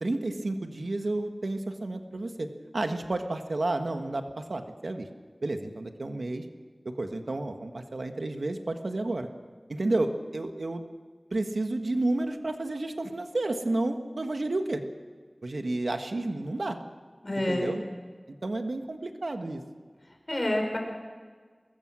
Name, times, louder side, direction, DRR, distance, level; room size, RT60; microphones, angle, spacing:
voice 1, 0.0-5.1 5.4-6.4 6.9-9.3 9.7-10.8 11.3-14.8 15.4-16.8 17.3-17.8 18.3-19.6, right 2 dB, 85° right, 6 dB, 1.6 m, -31 dB
voice 2, 17.2-17.7 20.3-20.8, left 1 dB, 45° left, 2 dB, 5.4 m, -28 dB
23.5 x 21.0 x 6.3 m, 1.6 s
wide cardioid pair, 55°, 0 cm